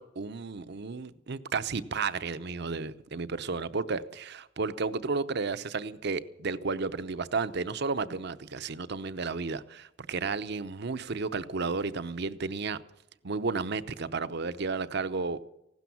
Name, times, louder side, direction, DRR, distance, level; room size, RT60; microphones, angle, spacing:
voice 1, 0.0-12.8 13.2-15.4, right 4 dB, 55° right, 0.8 m, -32 dB
16.0 x 12.5 x 7.2 m
head